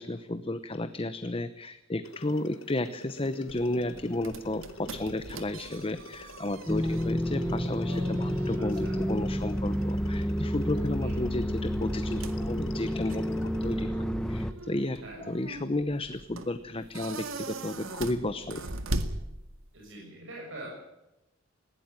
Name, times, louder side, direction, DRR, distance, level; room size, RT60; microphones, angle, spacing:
voice 1, 0.0-15.0 15.3-18.6, left 1 dB, 25° left, 11 dB, 0.9 m, -33 dB
sound 1, 2.0-13.9, left 2 dB, 75° left, 1.8 m, -48 dB
sound 2, 3.5-19.9, right 2 dB, 90° right, 2.0 m, -41 dB
sound 3, 6.7-14.5, equal, 5° left, 1.1 m, -30 dB
voice 2, 8.6-9.1 11.0-11.4 15.0-15.3 19.7-20.8, right 1 dB, 70° right, -2 dB, 7.1 m, -44 dB
20.5 x 16.5 x 9.0 m, 0.93 s
head